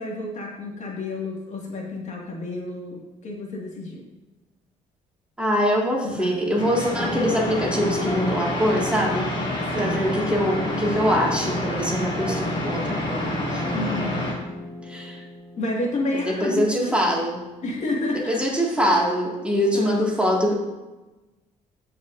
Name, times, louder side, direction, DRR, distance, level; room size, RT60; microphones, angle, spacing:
voice 1, 0.0-4.0 6.0-6.5 9.7-10.0 13.7-14.3 15.5-17.0 17.6-18.4 19.7-20.1, left 2 dB, 50° left, -1 dB, 1.9 m, -30 dB
voice 2, 5.4-9.3 9.7-13.6 14.8-15.2 16.2-17.4 18.1-20.5, equal, 5° right, -2 dB, 2.0 m, -23 dB
sound 1, 6.6-14.3, left 1 dB, 35° left, 2.3 m, -28 dB
sound 2, 7.0-16.7, equal, 15° left, 1.0 m, -37 dB
15.0 x 5.1 x 2.6 m, 1.1 s
cardioid pair, 90°, 15 cm